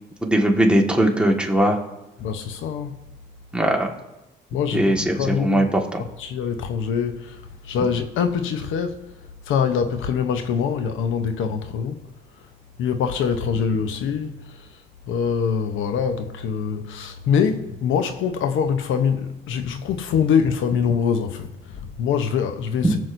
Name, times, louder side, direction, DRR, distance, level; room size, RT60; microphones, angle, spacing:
voice 1, 0.2-1.8 3.5-3.9 4.7-6.0 22.8-22.9, right 1 dB, 5° right, 1.6 m, -19 dB
voice 2, 2.2-3.0 4.5-5.7 6.2-9.0 9.5-12.0 12.8-14.7 15.1-23.0, left 7 dB, 85° left, 0.8 m, -24 dB
21.5 x 7.6 x 2.6 m
cardioid pair, 90°, 20 cm